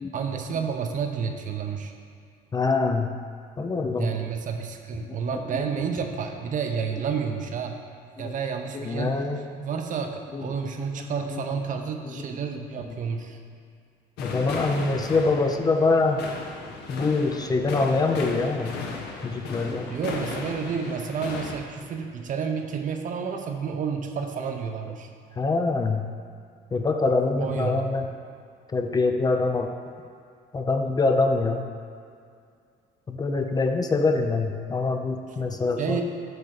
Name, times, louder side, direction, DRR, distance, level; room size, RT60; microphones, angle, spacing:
voice 1, 0.1-1.9 4.0-7.8 8.2-9.2 9.6-13.4 19.9-25.1 27.4-27.9 35.8-36.0, right 6 dB, 50° right, 5 dB, 0.7 m, -30 dB
voice 2, 2.5-3.1 3.6-4.2 5.0-5.5 8.2-8.3 8.7-9.6 10.3-10.7 11.3-11.4 12.1-12.2 14.2-16.2 16.9-18.9 19.2-19.9 25.4-26.0 26.7-28.1 28.7-29.7 30.5-31.6 33.1-36.0, left 3 dB, 25° left, 5 dB, 0.5 m, -24 dB
sound 1, 14.2-21.6, left 4 dB, 80° left, 0.9 m, -35 dB
7.8 x 3.5 x 6.5 m, 2.3 s
cardioid pair, 110°, 17 cm